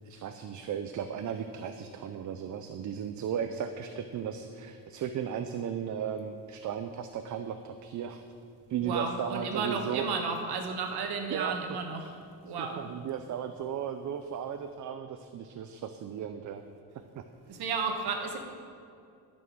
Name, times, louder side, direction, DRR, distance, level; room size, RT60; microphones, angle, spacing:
voice 1, 0.0-8.2 8.7-10.1 11.3-11.6 12.0-12.1 12.6-16.6 17.2-17.3, right 8 dB, 50° right, 8 dB, 0.6 m, -35 dB
voice 2, 8.8-12.1 12.4-12.8 17.4-18.4, right 5 dB, 85° right, 3 dB, 1.5 m, -33 dB
12.5 x 6.1 x 6.3 m, 2.5 s
cardioid pair, 130°, 37 cm